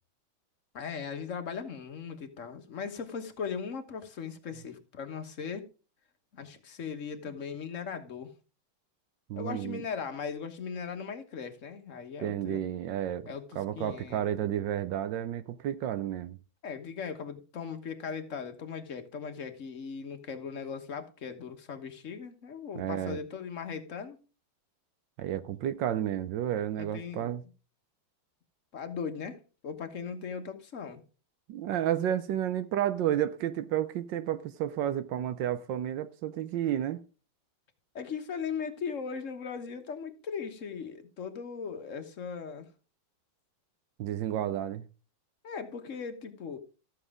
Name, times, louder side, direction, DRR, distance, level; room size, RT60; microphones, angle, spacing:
voice 1, 0.7-5.7 6.3-8.3 9.3-12.6 13.3-14.2 16.6-24.2 26.7-27.3 28.7-29.4 29.6-31.0 37.9-42.7 45.4-46.6, left 6 dB, 45° left, 1.4 m, -38 dB
voice 2, 9.3-9.8 12.2-13.3 13.5-16.4 22.7-23.2 25.2-27.4 31.5-37.0 44.0-44.9, right 11 dB, 75° right, 1.3 m, -31 dB
13.0 x 7.5 x 3.6 m
omnidirectional pair, 2.2 m